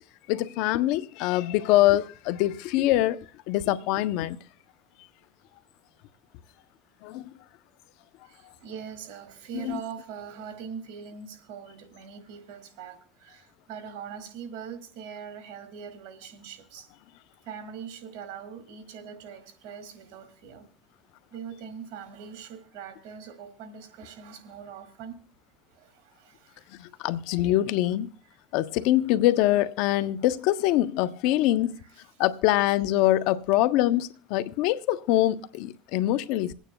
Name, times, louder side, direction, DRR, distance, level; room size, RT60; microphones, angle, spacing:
voice 1, 0.3-3.2 3.5-4.4 7.0-7.3 9.6-9.8 27.0-28.1 28.5-31.8 32.2-36.5, left 15 dB, 70° left, 0.6 m, -24 dB
voice 2, 8.2-16.9 17.4-20.7 21.3-25.2 25.7-27.1 27.4-27.5 28.3-28.4 31.8-32.1, right 7 dB, 75° right, 2.2 m, -42 dB
27.0 x 9.1 x 2.2 m
supercardioid pair, 90°, 0 cm